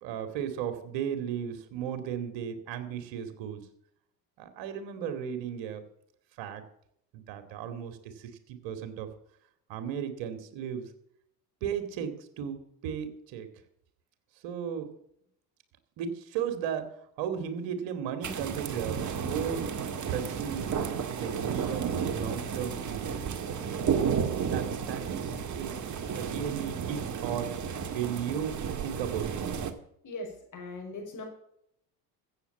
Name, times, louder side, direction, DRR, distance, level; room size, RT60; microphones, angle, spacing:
voice 1, 0.0-3.7 4.4-5.8 6.4-6.6 7.1-9.1 9.7-10.9 11.6-13.5 14.4-14.9 16.0-16.9 17.2-19.6 20.1-23.2 24.3-25.8 26.2-27.5 27.9-29.4, right 8 dB, 60° right, 9 dB, 2.5 m, -35 dB
sound 1, 18.2-29.7, right 7 dB, 35° right, 1.9 m, -32 dB
voice 2, 30.0-31.2, left 2 dB, 40° left, 2 dB, 5.9 m, -40 dB
14.5 x 8.3 x 7.3 m, 0.72 s
hypercardioid pair, 65°, 49 cm